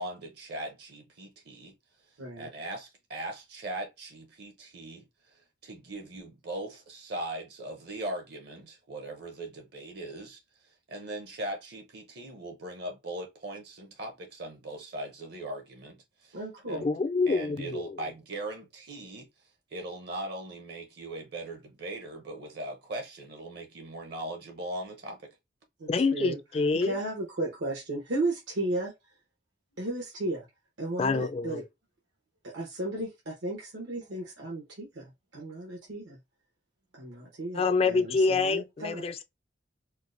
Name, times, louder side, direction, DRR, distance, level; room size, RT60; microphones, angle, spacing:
voice 1, 0.0-1.7 2.4-16.4 16.7-16.9 17.3-19.3 19.7-25.3, right 1 dB, 55° right, 0.7 m, -39 dB
voice 2, 2.2-2.5 16.3-16.8 25.8-26.4 26.8-28.9 29.8-30.5 30.8-31.6 32.4-36.2 36.9-39.0, right 2 dB, 85° right, 1.0 m, -34 dB
voice 3, 16.8-17.9 25.9-26.9 31.0-31.6 37.5-39.2, left 4 dB, 30° left, 0.3 m, -26 dB
4.4 x 2.1 x 2.5 m
head